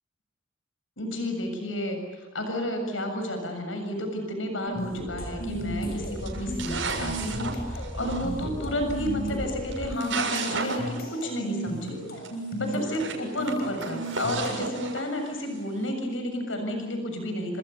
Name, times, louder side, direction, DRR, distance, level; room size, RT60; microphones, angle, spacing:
voice 1, 1.0-12.0 12.6-17.6, left 1 dB, 85° left, 5 dB, 7.0 m, -31 dB
sound 1, 4.7-14.9, right 1 dB, 55° left, 7.1 m, -35 dB
sound 2, 5.0-9.9, equal, 5° right, 1.5 m, -37 dB
sound 3, 5.6-5.8 6.2-8.3 9.3-9.4 9.7-11.0 11.3-11.4 11.6-11.7 12.2-12.3 12.8-15.6, right 4 dB, 80° right, 7.2 m, -34 dB
28.5 x 27.5 x 7.0 m, 1.1 s
head